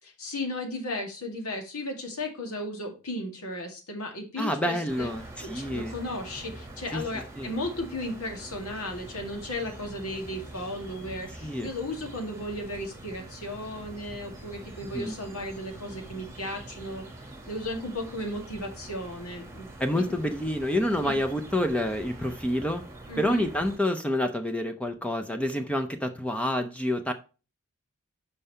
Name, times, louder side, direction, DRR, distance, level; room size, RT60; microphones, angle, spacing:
voice 1, 0.0-5.1 5.4-17.0 17.5-19.7 19.9-20.2 21.0-21.2 23.1-23.4, left 1 dB, 75° left, 3 dB, 2.1 m, -35 dB
voice 2, 4.4-5.9 6.9-7.0 7.4-7.5 11.4-11.7 14.8-15.2 19.8-22.8 23.2-27.1, left 1 dB, 5° left, 6 dB, 0.5 m, -28 dB
sound 1, 4.9-23.8, right 1 dB, 15° right, 1.4 m, -44 dB
5.6 x 5.3 x 5.4 m, 0.33 s
head